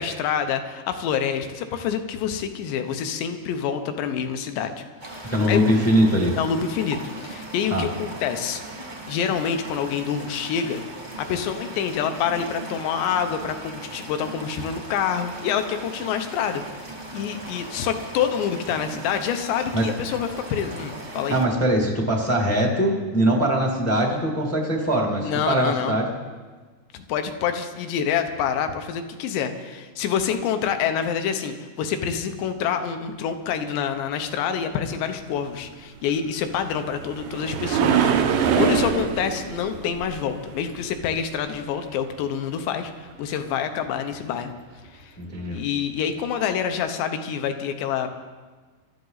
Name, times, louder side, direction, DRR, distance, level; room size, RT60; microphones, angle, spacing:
voice 1, 0.0-4.7 5.2-5.6 6.4-8.6 9.1-10.8 11.2-16.6 17.1-21.4 25.2-26.0 26.9-44.5 44.9-45.1 45.5-48.1, left 8 dB, 80° left, 7 dB, 3.2 m, -27 dB
sound 1, 5.0-21.4, right 2 dB, 90° right, 0.4 m, -38 dB
voice 2, 5.3-6.3 7.7-7.9 19.7-19.9 21.3-26.1 45.2-45.6, right 1 dB, 15° left, 0 dB, 0.5 m, -22 dB
sound 2, 36.3-41.6 45.5-45.6 46.2-46.3, right 7 dB, 70° right, 2.4 m, -24 dB
24.5 x 13.0 x 4.0 m, 1.4 s
omnidirectional pair, 5.0 m